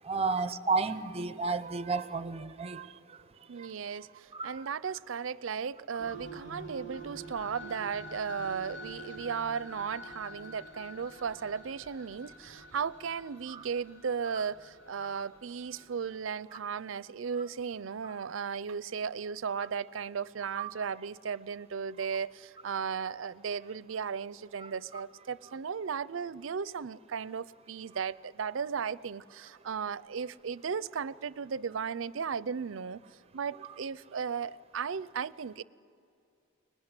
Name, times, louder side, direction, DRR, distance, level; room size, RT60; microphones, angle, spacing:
voice 1, 0.0-3.7 4.3-4.7 6.1-6.2 13.5-13.6 15.0-15.2 18.0-18.1 20.6-20.7 22.7-22.8 24.6-25.0, right 4 dB, 30° right, 0.7 m, -34 dB
voice 2, 3.5-33.0 33.3-35.6, right 6 dB, 70° right, 0.5 m, -36 dB
sound 1, 6.0-16.1, right 1 dB, 65° left, 4.7 m, -47 dB
24.0 x 20.0 x 9.8 m
head